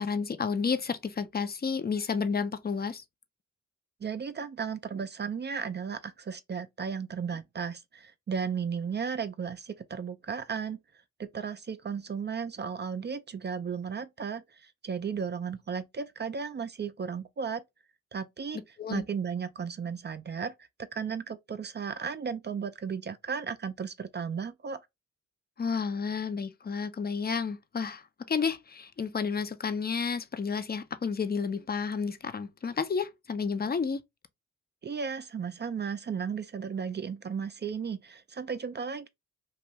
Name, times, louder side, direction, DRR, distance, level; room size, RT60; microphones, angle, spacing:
voice 1, 0.0-3.0 18.8-19.0 25.6-28.0 28.3-34.0, left 5 dB, 30° left, 0.5 m, -31 dB
voice 2, 4.0-10.8 11.2-17.6 18.1-18.6 18.9-20.5 20.8-24.8 34.8-39.1, right 6 dB, 35° right, 0.4 m, -35 dB
2.5 x 2.4 x 3.0 m
supercardioid pair, 45°, 33 cm